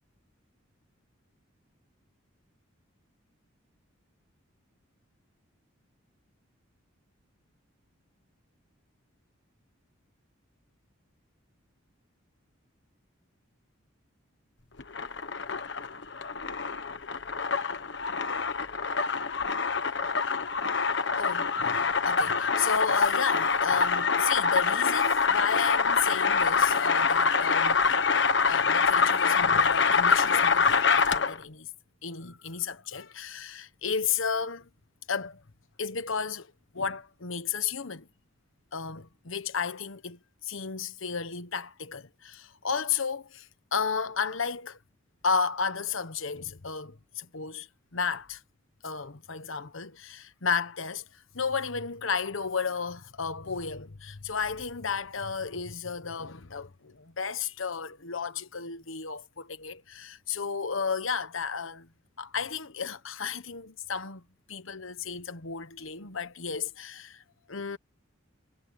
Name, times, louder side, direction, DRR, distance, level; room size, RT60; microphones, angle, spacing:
sound 1, 14.8-31.4, left 5 dB, 55° left, 1.4 m, -25 dB
voice 1, 21.2-27.9 28.4-31.7 32.0-34.7 35.1-35.4 35.8-36.5 36.7-38.1 38.7-44.8 45.2-48.4 48.8-61.9 62.2-64.2 64.5-67.2 67.5-67.8, left 6 dB, 75° left, 1.2 m, -33 dB
head